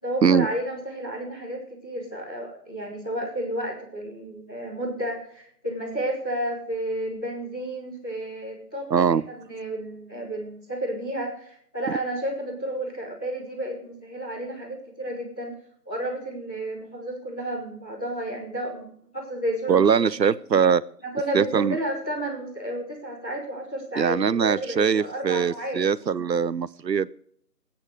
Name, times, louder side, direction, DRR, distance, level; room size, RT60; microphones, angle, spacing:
voice 1, 0.0-15.5 15.8-19.9 21.0-25.8, right 1 dB, 5° left, -12 dB, 2.1 m, -32 dB
voice 2, 8.9-9.2 19.7-20.8 21.3-21.8 24.0-27.1, right 7 dB, 85° right, 20 dB, 0.7 m, -21 dB
20.5 x 9.0 x 4.9 m, 0.64 s
figure-of-eight pair, 170°, 49 cm